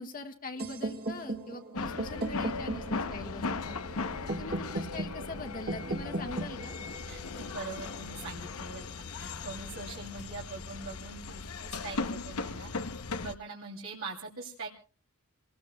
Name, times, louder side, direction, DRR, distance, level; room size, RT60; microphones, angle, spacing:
voice 1, 0.0-3.8 4.2-6.7, left 2 dB, 40° left, 4 dB, 1.4 m, -42 dB
sound 1, 0.6-8.5, right 2 dB, 45° right, 1.5 m, -38 dB
sound 2, 1.7-13.3, left 4 dB, 80° left, 0.8 m, -38 dB
voice 2, 7.1-8.9 9.2-12.7 13.2-14.7, right 3 dB, 70° right, -3 dB, 2.8 m, -42 dB
29.0 x 19.5 x 2.2 m, 0.34 s
head